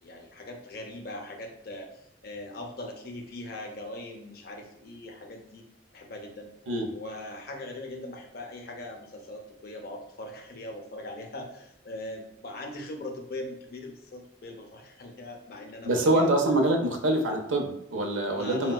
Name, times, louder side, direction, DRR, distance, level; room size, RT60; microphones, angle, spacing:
voice 1, 0.0-5.6 5.9-6.5 6.9-16.4 18.3-18.7, left 1 dB, 50° left, 2 dB, 0.5 m, -40 dB
voice 2, 15.8-18.7, right 1 dB, 90° right, 3 dB, 0.6 m, -25 dB
4.5 x 2.1 x 2.2 m, 0.76 s
head